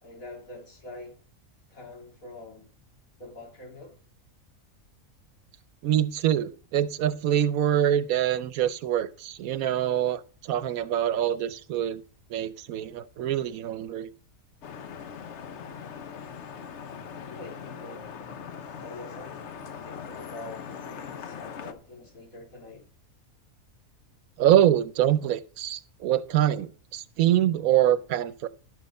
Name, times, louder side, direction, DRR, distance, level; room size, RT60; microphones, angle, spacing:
voice 1, 0.0-1.2 1.7-2.7 3.2-4.0 17.2-18.1 18.8-22.9, left 2 dB, 75° left, 3.9 m, -45 dB
voice 2, 5.8-12.0 12.3-14.1 24.4-28.5, right 11 dB, 80° right, 1.1 m, -25 dB
Vehicle horn car horn honking / Traffic noise roadway noise, 14.6-21.7, left 7 dB, 60° left, 1.1 m, -41 dB
11.5 x 6.5 x 5.3 m
omnidirectional pair, 1.5 m